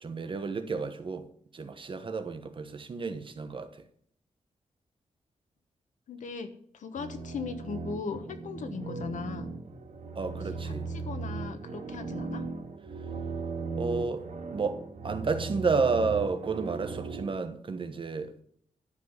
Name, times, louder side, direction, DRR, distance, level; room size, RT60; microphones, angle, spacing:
voice 1, 0.0-1.3 1.5-3.8 10.1-10.9 13.8-18.4, right 4 dB, 40° right, 1.2 m, -31 dB
voice 2, 6.1-9.5 10.6-12.4, left 5 dB, 85° left, 1.2 m, -38 dB
sound 1, 6.9-17.3, right 4 dB, 80° right, 2.6 m, -38 dB
12.0 x 5.6 x 8.1 m
wide cardioid pair, 140°, 13 cm